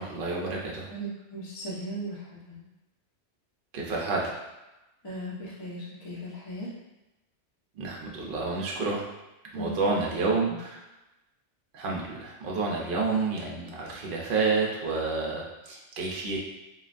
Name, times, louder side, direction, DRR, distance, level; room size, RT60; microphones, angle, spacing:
voice 1, 0.0-0.9 3.7-4.3 7.8-9.0 9.5-10.8 11.7-16.4, right 3 dB, 55° right, -2 dB, 0.7 m, -29 dB
voice 2, 0.9-2.6 5.0-6.7 9.5-10.3, right 1 dB, 30° left, -7 dB, 0.5 m, -37 dB
3.1 x 2.3 x 2.5 m, 0.98 s
omnidirectional pair, 1.2 m